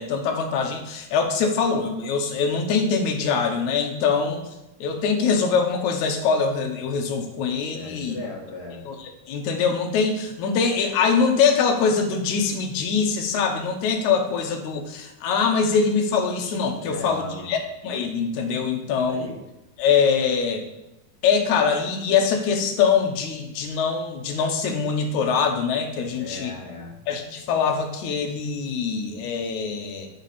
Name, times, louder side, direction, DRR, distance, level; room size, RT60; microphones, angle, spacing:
voice 1, 0.0-4.4 4.8-8.2 8.9-19.3 19.8-20.6 21.2-26.5 27.1-30.1, left 5 dB, 75° left, 4 dB, 2.1 m, -23 dB
voice 2, 7.7-8.8 16.8-17.5 19.0-19.4 26.1-27.0, left 3 dB, 50° left, -5 dB, 2.2 m, -37 dB
9.1 x 4.0 x 4.1 m, 0.94 s
omnidirectional pair, 3.5 m